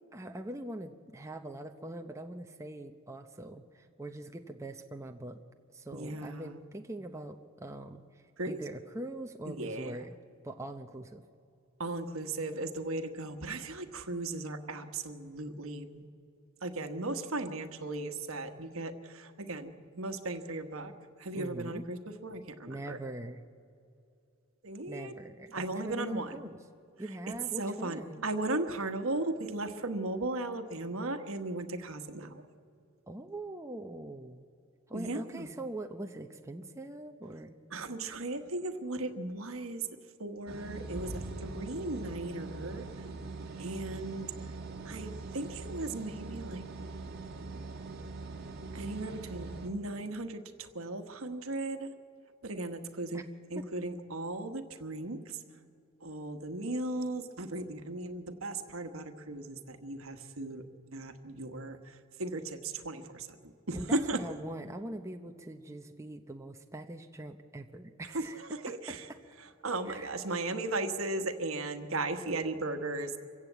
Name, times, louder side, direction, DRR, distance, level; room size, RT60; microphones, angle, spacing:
voice 1, 0.1-5.4 5.7-10.1 10.4-11.2 21.3-21.8 22.7-23.4 24.9-26.6 27.0-28.3 33.1-34.5 34.9-37.6 53.1-53.2 53.5-53.6 63.7-69.2 69.9-70.2, right 1 dB, 15° right, 5 dB, 0.7 m, -42 dB
voice 2, 5.9-6.6 8.4-8.6 9.5-10.1 11.8-16.0 16.6-20.9 21.2-23.0 24.6-25.1 25.5-26.4 27.6-32.4 34.9-35.5 37.7-39.9 40.2-42.9 43.6-44.3 44.8-46.6 48.7-51.9 52.4-53.2 53.5-55.2 56.0-60.6 60.9-64.2 68.1-69.0 69.6-73.1, right 2 dB, 70° right, 8 dB, 1.4 m, -36 dB
sound 1, 40.5-49.7, right 3 dB, 50° right, 2.0 m, -42 dB
26.0 x 16.0 x 8.1 m, 2.7 s
head